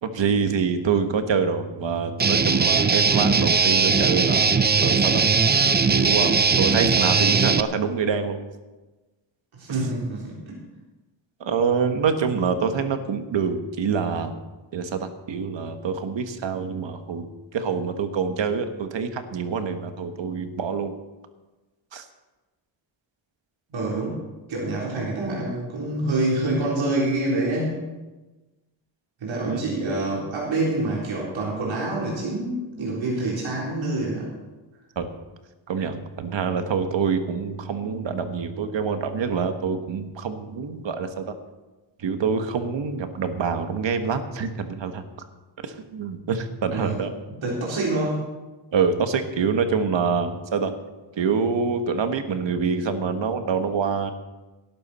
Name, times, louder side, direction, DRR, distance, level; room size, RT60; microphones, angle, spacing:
voice 1, 0.0-5.3 5.9-8.4 11.4-14.3 14.7-17.3 17.5-20.9 21.9-22.1 29.4-29.6 34.9-35.1 35.7-41.3 42.0-45.0 45.6-47.1 48.7-50.7 51.2-54.1, right 5 dB, 70° right, 7 dB, 1.5 m, -26 dB
Guitar, 2.2-7.6, right 5 dB, 20° right, 0.5 m, -19 dB
voice 2, 9.5-10.6 23.7-24.2 24.5-27.9 29.2-34.3 46.7-47.0 47.4-48.3, right 2 dB, 85° right, -5 dB, 3.8 m, -26 dB
18.0 x 12.0 x 4.3 m, 1.1 s
wide cardioid pair, 145°, 46 cm